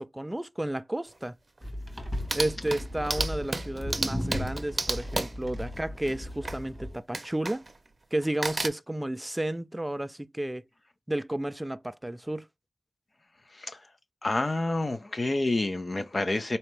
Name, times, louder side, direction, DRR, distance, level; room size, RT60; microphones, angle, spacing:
voice 1, 0.0-1.3 2.3-7.6 8.1-10.6 11.1-12.5, right 1 dB, 15° right, 0.4 m, -32 dB
sound 1, 1.1-1.2 1.6-1.7 2.0-6.6 7.1-7.9 8.2-8.7, right 2 dB, 40° right, 0.7 m, -33 dB
sound 2, 1.6-7.0, equal, 10° left, 1.5 m, -36 dB
voice 2, 14.2-16.6, left 2 dB, 45° left, 0.6 m, -28 dB
4.1 x 2.8 x 3.2 m
cardioid pair, 60°, 0 cm